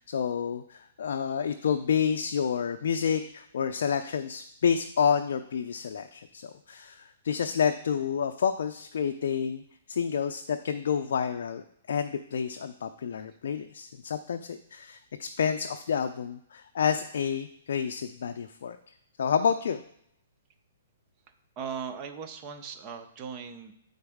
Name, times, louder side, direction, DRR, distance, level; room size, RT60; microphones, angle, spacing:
voice 1, 0.1-9.6 9.9-18.8 19.2-19.8, left 7 dB, 70° left, 7 dB, 0.4 m, -29 dB
voice 2, 21.6-23.7, right 6 dB, 25° right, 6 dB, 0.7 m, -38 dB
9.5 x 3.9 x 3.5 m, 0.73 s
hypercardioid pair, 155°, 0 cm